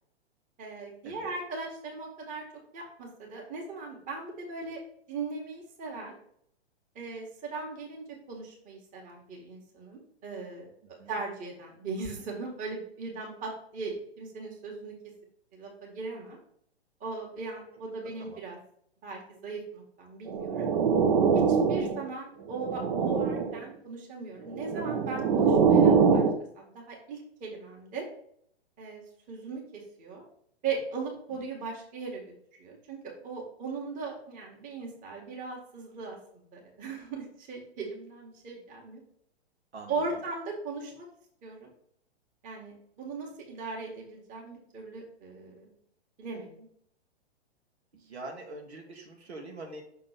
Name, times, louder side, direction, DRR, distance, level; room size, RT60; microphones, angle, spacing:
voice 1, 0.6-2.4 2.7-4.8 5.1-6.2 7.0-10.6 11.1-14.9 15.5-16.4 17.0-18.6 19.0-20.7 21.5-26.2 26.5-28.1 28.8-29.0 29.3-29.6 30.0-30.2 30.6-32.2 32.6-39.0 39.9-41.1 41.4-41.7 42.4-45.7 46.2-46.7, right 4 dB, 25° right, -1 dB, 1.9 m, -38 dB
sound 1, 20.3-22.1 22.5-23.6 24.5-26.4, right 6 dB, 45° right, 0.9 m, -24 dB
voice 2, 48.0-49.8, right 2 dB, 75° right, 0 dB, 1.9 m, -43 dB
6.2 x 3.8 x 5.8 m, 0.66 s
hypercardioid pair, 120°, 32 cm